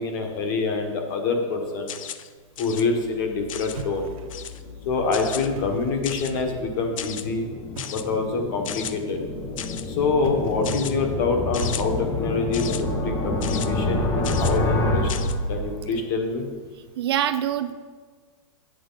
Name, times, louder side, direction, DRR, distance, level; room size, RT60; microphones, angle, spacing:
voice 1, 0.0-1.9 2.6-4.1 4.8-7.5 7.9-9.2 9.8-15.2 15.5-16.5, left 4 dB, 40° left, 3 dB, 1.3 m, -26 dB
sound 1, 1.9-2.3 2.6-2.8 3.5-3.8 4.3-4.6 5.1-5.5 6.0-6.4 7.0-7.2 7.8-8.0 8.6-8.9 9.6-9.9 10.6-10.9 11.5-11.8 12.5-12.8 13.4-13.7 14.2-14.6 15.1-15.3, left 10 dB, 70° left, 0.6 m, -35 dB
sound 2, 3.1-16.1, left 2 dB, 15° left, 0.5 m, -29 dB
sound 3, 3.7-4.6 5.4-6.1 7.7-8.2 10.2-10.8 11.6-12.3, right 4 dB, 85° right, 1.2 m, -40 dB
voice 2, 17.0-17.7, right 11 dB, 50° right, 11 dB, 0.4 m, -24 dB
9.3 x 7.8 x 4.0 m, 1.5 s
supercardioid pair, 170°, 17 cm